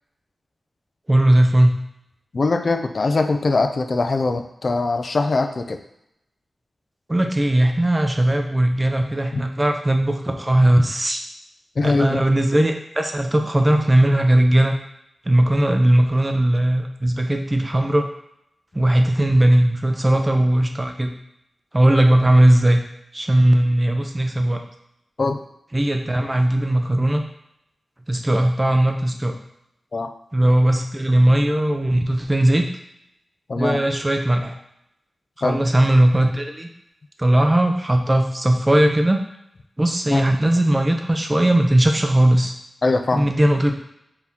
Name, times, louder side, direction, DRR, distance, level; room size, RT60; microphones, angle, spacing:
voice 1, 1.1-1.8 7.1-11.2 11.8-14.7 15.3-18.1 18.7-21.1 21.7-22.8 23.1-24.6 25.7-27.2 28.1-29.3 30.3-32.7 33.6-34.5 35.4-36.7 37.2-39.2 39.8-42.5 43.1-43.7, right 1 dB, 20° right, 4 dB, 0.5 m, -18 dB
voice 2, 2.3-5.8 9.3-9.4 11.8-12.2 25.2-25.4 29.9-30.1 33.5-33.8 35.4-35.6 40.1-40.3 42.8-43.3, left 3 dB, 55° left, 7 dB, 0.4 m, -21 dB
4.4 x 2.8 x 3.5 m, 0.80 s
wide cardioid pair, 95°, 0 cm